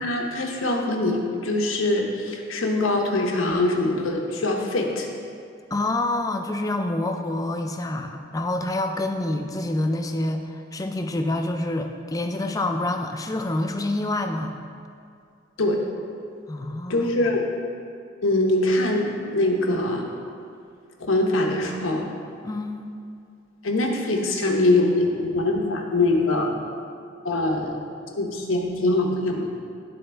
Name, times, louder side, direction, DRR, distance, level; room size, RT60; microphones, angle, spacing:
voice 1, 0.0-5.1 15.6-15.8 16.9-17.5 18.2-20.1 21.0-22.1 23.6-26.6 27.2-27.8 28.1-29.5, left 2 dB, 85° left, 0 dB, 1.0 m, -23 dB
voice 2, 5.7-14.5 16.5-17.1 22.4-22.9, left 2 dB, 15° left, 4 dB, 0.4 m, -27 dB
12.0 x 4.3 x 3.4 m, 2.4 s
head